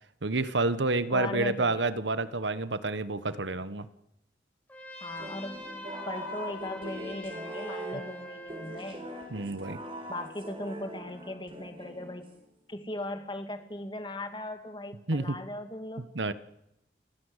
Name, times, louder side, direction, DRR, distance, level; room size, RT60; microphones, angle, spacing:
voice 1, 0.2-3.9 9.3-9.8 15.1-15.4 16.0-16.3, right 2 dB, 85° right, 14 dB, 1.3 m, -29 dB
voice 2, 1.1-1.8 5.0-5.6 6.1-9.0 10.1-12.3 12.7-16.1, left 1 dB, 25° left, 7 dB, 2.7 m, -38 dB
Trumpet, 4.7-9.0, left 1 dB, 10° left, 4.8 m, -44 dB
sound 1, 5.2-12.5, right 1 dB, 30° right, 4.4 m, -42 dB
29.0 x 17.5 x 8.3 m, 0.86 s
head